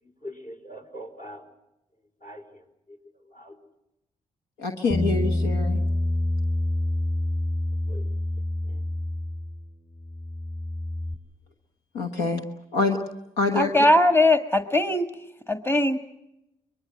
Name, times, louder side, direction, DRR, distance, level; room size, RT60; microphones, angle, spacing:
voice 1, 0.0-1.5 2.2-3.0 3.3-3.6 7.9-8.1 8.6-8.8, equal, 50° left, 5 dB, 4.8 m, -43 dB
voice 2, 4.6-5.8 11.9-12.4 12.7-13.0 13.4-13.7, left 3 dB, 85° left, 4 dB, 1.4 m, -25 dB
Bass guitar, 4.9-9.7 10.0-11.1, left 1 dB, 30° left, 5.7 m, -27 dB
voice 3, 13.5-15.0 15.5-16.0, left 1 dB, 15° left, 8 dB, 1.6 m, -20 dB
23.5 x 21.5 x 7.8 m, 0.88 s
hypercardioid pair, 45°, 17 cm